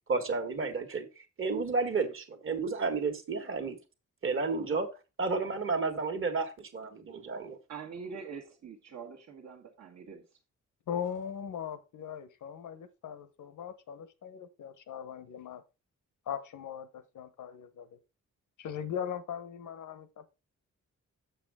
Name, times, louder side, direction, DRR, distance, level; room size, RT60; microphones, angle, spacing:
voice 1, 0.1-1.1 1.4-3.8 4.2-4.9 5.2-7.6, right 4 dB, 45° right, 1.4 m, -31 dB
voice 2, 7.7-10.2, right 5 dB, 65° right, 1.3 m, -44 dB
voice 3, 10.9-15.6 16.3-17.9 18.6-20.3, left 8 dB, 80° left, 1.0 m, -39 dB
7.2 x 6.9 x 3.6 m
wide cardioid pair, 130°, 30 cm